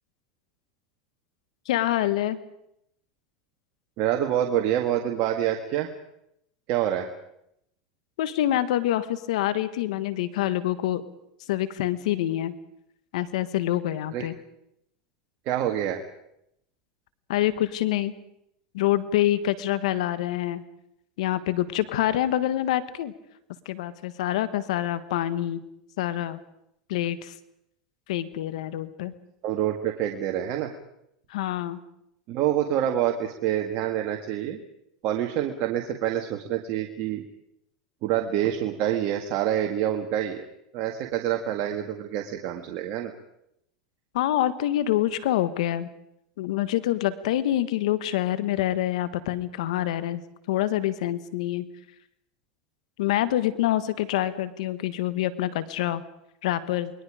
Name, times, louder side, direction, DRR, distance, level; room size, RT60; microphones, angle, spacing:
voice 1, 1.7-2.4 8.2-11.0 11.5-12.5 13.1-14.3 17.3-18.1 18.7-20.6 21.2-23.1 23.6-25.6 26.0-26.4 26.9-27.3 28.1-29.1 31.3-31.8 44.1-45.9 46.4-50.2 50.5-51.7 53.0-56.0 56.4-56.9, left 13 dB, 80° left, 13 dB, 1.4 m, -26 dB
voice 2, 4.0-5.9 6.7-7.1 14.1-14.2 15.5-16.0 29.4-30.7 32.3-34.6 35.0-37.2 38.0-40.4 40.7-43.1, right 11 dB, 50° right, 3 dB, 1.9 m, -26 dB
29.0 x 21.5 x 5.0 m, 0.79 s
supercardioid pair, 115°, 4 cm